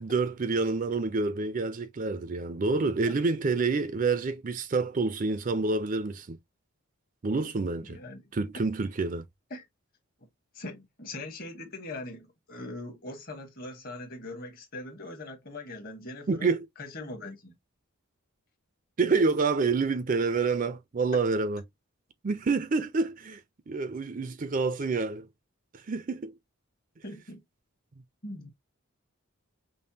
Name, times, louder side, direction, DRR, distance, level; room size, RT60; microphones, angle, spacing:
voice 1, 0.0-6.4 7.2-8.0 8.3-9.3 16.3-16.7 19.0-21.6 22.2-25.3 25.7-26.3, right 4 dB, 35° right, 0.4 m, -28 dB
voice 2, 7.9-8.2 9.5-9.6 10.5-16.5 16.8-17.5 27.0-27.4 28.2-28.5, left 2 dB, 45° left, 1.2 m, -41 dB
5.2 x 2.1 x 2.7 m
head